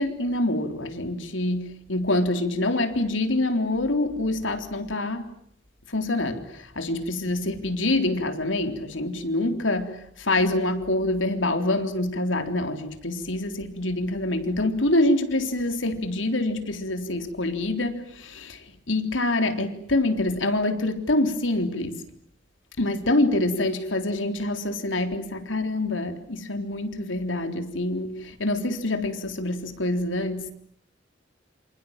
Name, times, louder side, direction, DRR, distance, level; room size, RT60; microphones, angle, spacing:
voice 1, 0.0-5.3 5.9-22.1 22.8-30.5, left 2 dB, 80° left, 3.7 m, -26 dB
28.0 x 27.5 x 7.4 m
head